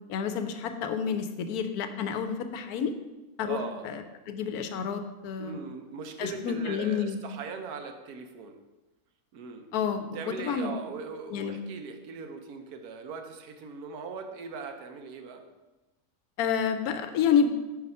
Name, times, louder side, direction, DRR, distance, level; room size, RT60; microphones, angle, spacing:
voice 1, 0.1-2.9 3.4-5.6 6.2-7.2 9.7-10.1 10.4-10.7 11.3-11.6 16.4-17.6, left 7 dB, 80° left, 8 dB, 1.1 m, -29 dB
voice 2, 3.4-3.9 5.4-8.6 9.3-9.7 10.1-15.4, right 5 dB, 90° right, 6 dB, 1.3 m, -40 dB
5.2 x 4.7 x 5.4 m, 1.1 s
omnidirectional pair, 1.6 m